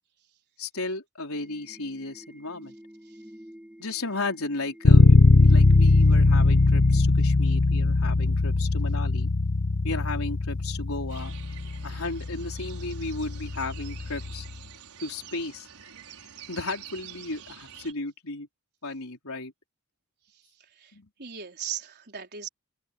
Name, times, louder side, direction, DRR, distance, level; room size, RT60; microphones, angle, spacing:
voice 1, 0.6-2.7 3.8-9.3 9.8-11.3 11.8-14.5 15.0-15.7 16.5-18.5 18.8-19.5 20.9-21.1, left 3 dB, 70° left, 4.5 m, -34 dB
sound 1, 1.3-7.0, equal, 5° right, 5.6 m, -49 dB
Bass guitar, 4.8-14.6, left 2 dB, 55° left, 0.9 m, -21 dB
sound 2, 11.1-17.9, right 8 dB, 80° right, 5.4 m, -47 dB
voice 2, 20.3-22.5, right 8 dB, 50° right, 4.5 m, -39 dB
open air
head